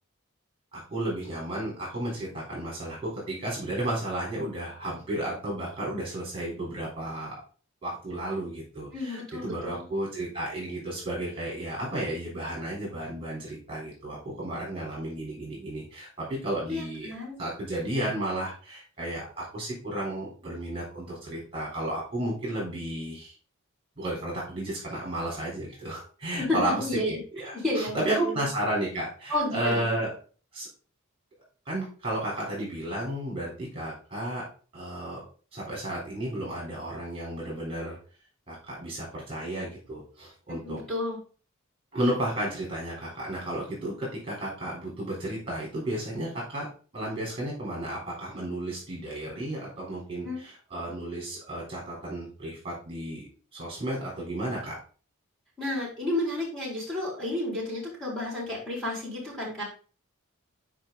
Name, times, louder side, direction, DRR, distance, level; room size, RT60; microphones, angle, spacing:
voice 1, 0.7-7.3 7.8-17.1 17.4-23.3 24.0-30.1 30.5-30.7 31.7-34.4 34.7-35.2 35.5-38.0 38.5-40.8 41.9-46.7 46.9-53.2 53.5-54.8, right 1 dB, 25° right, -4 dB, 3.6 m, -33 dB
voice 2, 8.9-9.9 16.7-17.4 26.4-27.2 27.5-28.5 29.3-29.9 40.6-41.2 50.2-50.4 55.6-59.6, left 1 dB, 5° left, -6 dB, 4.3 m, -31 dB
9.0 x 5.1 x 3.9 m, 0.38 s
head